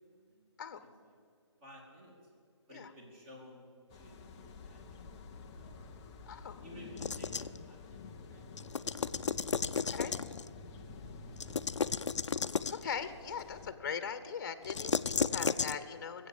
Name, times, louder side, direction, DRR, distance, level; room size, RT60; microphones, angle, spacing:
voice 1, 0.1-0.4 0.8-1.2 1.6-2.2 2.7-5.8 6.6-9.7 10.6-10.9 11.2-11.4, equal, 25° right, -1 dB, 3.1 m, -56 dB
sound 1, 3.9-13.7, left 4 dB, 10° left, 0.3 m, -50 dB
voice 2, 6.3-6.6 9.9-10.1 12.7-16.3, left 6 dB, 40° left, 12 dB, 0.9 m, -40 dB
sound 2, 7.0-7.6 8.6-10.5 11.4-12.9 14.6-15.7, left 5 dB, 85° left, 0.5 m, -33 dB
20.0 x 8.1 x 7.4 m, 2.3 s
hypercardioid pair, 160°, 15 cm